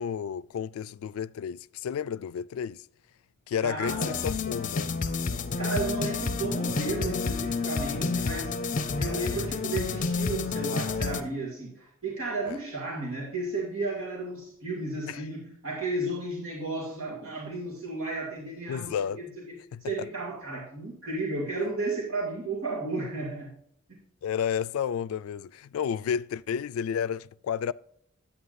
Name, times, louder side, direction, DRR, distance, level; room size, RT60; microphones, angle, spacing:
voice 1, 0.0-2.8 3.5-5.0 12.5-12.6 15.1-15.2 18.7-19.2 19.7-19.8 24.2-27.7, left 8 dB, 85° left, 0.3 m, -31 dB
voice 2, 3.6-4.1 5.6-8.6 9.0-19.5 19.8-23.5 23.9-24.0, right 2 dB, 85° right, 2.5 m, -33 dB
sound 1, 3.9-11.2, left 4 dB, 40° left, 0.6 m, -30 dB
9.5 x 8.8 x 2.6 m
head